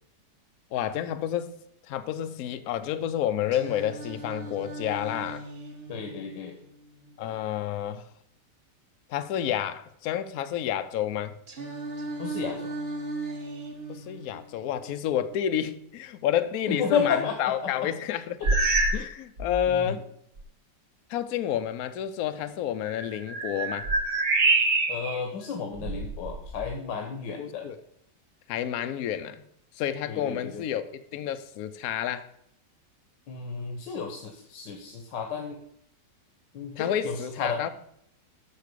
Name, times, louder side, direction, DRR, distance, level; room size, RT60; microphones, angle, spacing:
voice 1, 0.7-1.6 1.9-5.4 7.2-8.0 9.1-11.3 13.9-18.4 18.9-20.0 21.1-23.9 27.4-27.8 28.5-29.4 29.8-32.2 36.8-37.7, left 10 dB, 65° left, 10 dB, 1.0 m, -30 dB
Singing, 3.5-7.5 11.5-15.5, right 2 dB, 35° right, 1.5 m, -38 dB
voice 2, 5.9-6.6 12.2-12.7 16.7-17.9 18.4-18.8 19.7-20.0 24.9-27.7 30.0-30.6 33.3-35.6 36.5-37.6, left 6 dB, 90° left, 4 dB, 1.6 m, -32 dB
sound 1, 18.4-19.1 19.4-19.7 20.4-20.5 22.9-25.2 25.7-26.8, right 3 dB, 90° right, 2.2 m, -26 dB
8.3 x 6.1 x 6.7 m, 0.72 s
omnidirectional pair, 1.9 m